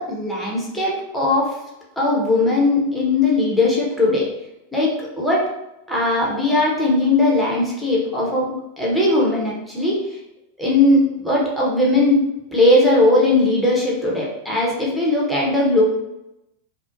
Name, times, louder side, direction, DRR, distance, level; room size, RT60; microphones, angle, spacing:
voice 1, 0.0-1.5 2.0-4.3 4.7-5.5 5.9-10.2 10.6-12.2 12.5-15.8, left 2 dB, ahead, -5 dB, 0.7 m, -19 dB
2.7 x 2.0 x 2.5 m, 0.90 s
figure-of-eight pair, 90°, 0 cm